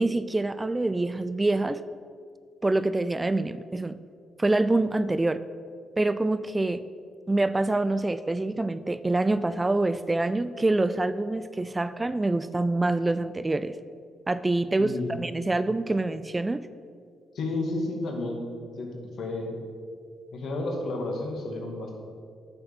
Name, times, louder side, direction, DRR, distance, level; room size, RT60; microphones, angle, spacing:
voice 1, 0.0-1.8 2.6-3.9 4.4-5.4 6.0-6.8 7.3-13.7 14.3-16.6, right 2 dB, 20° right, 14 dB, 0.4 m, -26 dB
voice 2, 14.8-15.1 17.3-18.4 18.8-18.9 19.2-19.5 20.3-22.0, left 2 dB, 65° left, 2 dB, 2.0 m, -31 dB
9.0 x 6.7 x 7.0 m, 2.2 s
hypercardioid pair, 50°, 0 cm